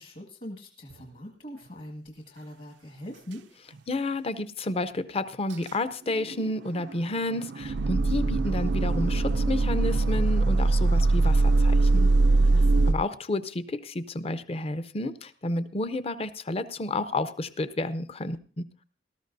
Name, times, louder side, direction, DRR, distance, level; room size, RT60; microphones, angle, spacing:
voice 1, 0.0-3.5 12.4-12.9, equal, 55° left, 1 dB, 1.8 m, -42 dB
sound 1, 3.8-3.9 5.5-5.6 6.1-12.9, right 3 dB, 75° right, 0.5 m, -22 dB
voice 2, 3.9-12.1 12.9-18.6, left 2 dB, 35° left, 13 dB, 0.6 m, -31 dB
19.0 x 13.5 x 2.6 m, 0.39 s
head